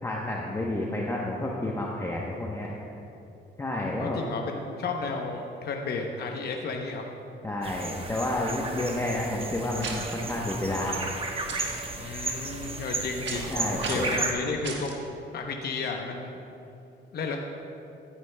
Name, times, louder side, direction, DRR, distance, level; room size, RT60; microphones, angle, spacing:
voice 1, 0.0-2.7 3.6-4.2 7.4-11.1 13.5-14.1, left 1 dB, 15° left, -3 dB, 0.9 m, -30 dB
voice 2, 4.0-7.1 12.0-14.9 15.3-16.4 17.1-17.4, left 4 dB, 55° left, 2 dB, 0.8 m, -33 dB
sound 1, 7.6-14.3, right 3 dB, 30° right, 1.1 m, -34 dB
sound 2, 9.8-10.2 11.5-11.8 13.3-13.5 13.8-14.2 14.6-15.0, right 4 dB, 65° right, 1.4 m, -35 dB
14.0 x 9.8 x 2.2 m, 2.9 s
cardioid pair, 90°, 20 cm